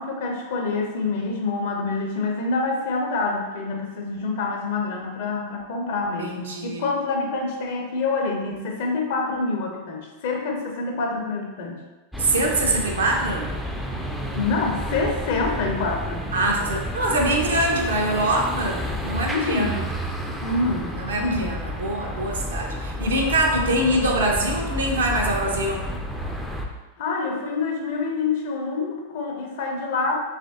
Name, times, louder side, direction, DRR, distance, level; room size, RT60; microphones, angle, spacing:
voice 1, 0.0-11.8 14.3-16.3 19.3-19.8 20.4-21.5 27.0-30.2, left 3 dB, 50° left, 1 dB, 0.5 m, -26 dB
voice 2, 6.2-6.9 12.2-13.5 16.3-19.9 20.9-25.9, right 1 dB, 65° right, 0 dB, 0.5 m, -24 dB
sound 1, 12.1-26.7, equal, ahead, 0.3 m, -31 dB
3.1 x 2.5 x 2.5 m, 1.2 s
figure-of-eight pair, 90°, 0 cm